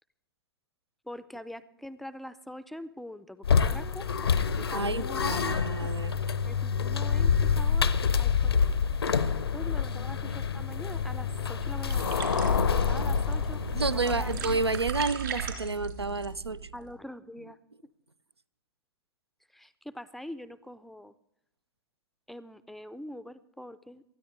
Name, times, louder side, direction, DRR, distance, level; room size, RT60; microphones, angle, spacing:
voice 1, 1.1-4.1 4.6-5.9 6.4-7.9 8.2-8.8 9.5-14.6 16.7-17.6 19.5-21.1 22.3-24.0, left 1 dB, ahead, 0.4 m, -44 dB
sound 1, 3.4-14.9, left 6 dB, 75° left, 0.7 m, -27 dB
voice 2, 4.7-6.2 13.7-16.7, right 3 dB, 90° right, 0.4 m, -30 dB
sound 2, 11.9-16.9, right 6 dB, 60° right, 3.5 m, -37 dB
19.5 x 13.0 x 3.3 m
figure-of-eight pair, 105°, 13 cm